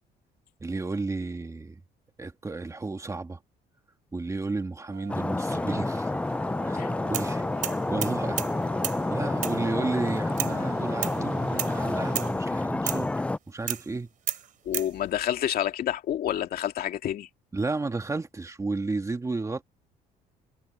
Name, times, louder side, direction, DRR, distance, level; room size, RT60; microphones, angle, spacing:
voice 1, 0.6-1.8 2.2-3.4 4.1-6.1 6.6-8.4 9.1-13.1 13.5-14.1 17.5-19.6, right 3 dB, 20° right, 2.0 m, -32 dB
sound 1, 4.9-12.3, right 10 dB, 70° right, 2.6 m, -46 dB
Stream, 5.1-13.4, left 2 dB, 5° left, 0.3 m, -29 dB
sound 2, 7.1-7.3 7.6-8.5 8.8-9.0 9.4-9.6 10.4-10.6 11.0-11.2 11.6-11.8 12.2-12.4 12.9-13.1 13.7-13.9 14.3-14.9, right 9 dB, 50° right, 3.4 m, -32 dB
voice 2, 14.6-17.3, left 11 dB, 60° left, 2.3 m, -28 dB
cardioid pair, 110°, 17 cm